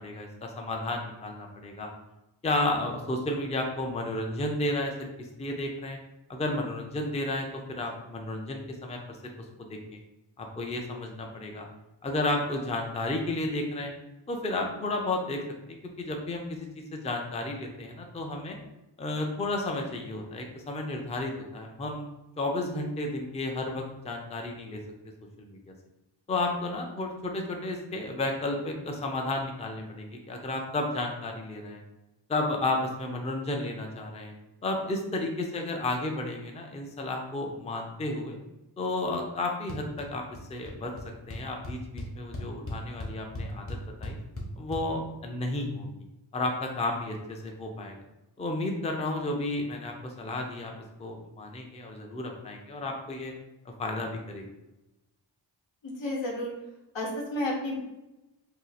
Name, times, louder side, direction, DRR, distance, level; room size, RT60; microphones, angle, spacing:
voice 1, 0.0-1.9 2.4-5.1 5.4-6.0 6.3-9.0 9.6-9.8 10.4-11.6 12.0-13.9 14.3-15.4 15.7-16.6 16.9-18.6 19.0-22.0 22.4-24.8 25.4-25.6 26.3-31.8 32.3-34.3 34.6-38.4 38.8-40.2 40.5-40.9 41.3-44.2 44.6-45.9 46.3-47.9 48.4-50.7 51.0-53.3 53.8-54.4, left 2 dB, 15° left, 2 dB, 0.4 m, -32 dB
sound 1, 39.7-40.1 40.3-40.7 41.0-41.1 41.3-44.8, left 1 dB, 30° left, 0.7 m, -37 dB
voice 2, 55.8-56.5 56.9-57.8, left 1 dB, 85° left, -2 dB, 1.0 m, -31 dB
2.7 x 2.5 x 3.9 m, 0.97 s
wide cardioid pair, 110°, 44 cm